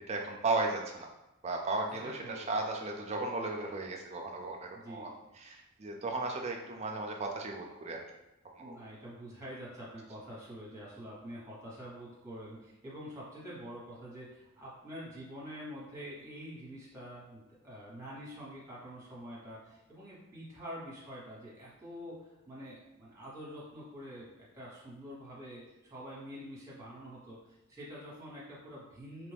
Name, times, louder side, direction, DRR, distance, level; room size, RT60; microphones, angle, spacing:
voice 1, 0.1-1.1 1.4-5.1 5.4-8.0 8.6-8.8, right 2 dB, 30° right, 1 dB, 0.4 m, -35 dB
voice 2, 1.9-2.6 4.7-5.1 8.6-29.3, equal, 15° right, -6 dB, 1.2 m, -46 dB
3.0 x 2.5 x 3.4 m, 0.92 s
head